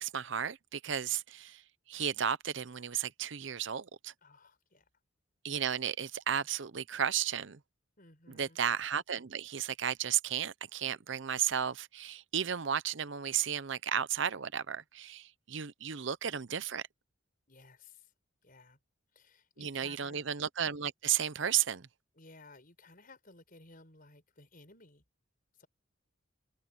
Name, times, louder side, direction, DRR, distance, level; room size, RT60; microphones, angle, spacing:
voice 1, 0.0-1.6 1.9-4.1 5.4-7.6 8.3-16.8 19.6-21.9, right 9 dB, 60° right, 0.7 m, -34 dB
voice 2, 4.2-4.9 8.0-8.6 17.5-18.1 18.4-18.8 19.1-20.3 22.1-25.0 25.6-25.7, left 3 dB, 45° left, 6.4 m, -57 dB
head